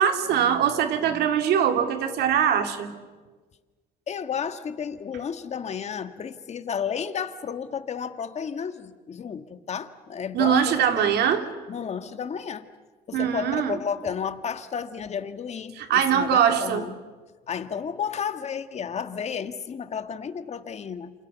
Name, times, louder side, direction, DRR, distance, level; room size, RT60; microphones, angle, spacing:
voice 1, 0.0-2.9 10.3-11.4 13.1-13.8 15.8-16.9, right 8 dB, 75° right, 7 dB, 2.6 m, -22 dB
voice 2, 4.1-11.1 11.7-12.7 13.1-17.0 17.5-21.1, left 7 dB, 40° left, 9 dB, 1.7 m, -32 dB
28.5 x 27.5 x 7.0 m, 1.4 s
cardioid pair, 110°, 17 cm